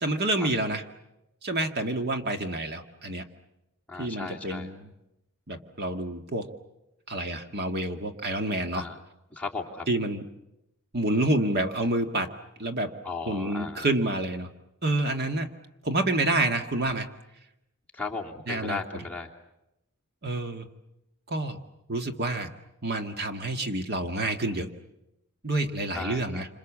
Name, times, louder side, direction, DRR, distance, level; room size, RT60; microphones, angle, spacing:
voice 1, 0.0-0.8 1.4-3.2 4.0-4.9 5.5-6.5 7.1-8.8 9.9-10.2 10.9-12.3 12.6-12.9 13.3-14.5 14.8-15.5 15.8-17.1 18.5-18.8 20.2-20.7 21.3-21.6 21.9-22.5 22.8-24.7 25.4-26.5, right 2 dB, 45° right, 5 dB, 1.8 m, -28 dB
voice 2, 3.9-4.7 8.7-9.0 9.3-9.8 13.0-13.9 17.9-19.3 25.9-26.5, left 4 dB, 5° left, -3 dB, 2.9 m, -36 dB
28.5 x 27.0 x 7.4 m, 0.90 s
head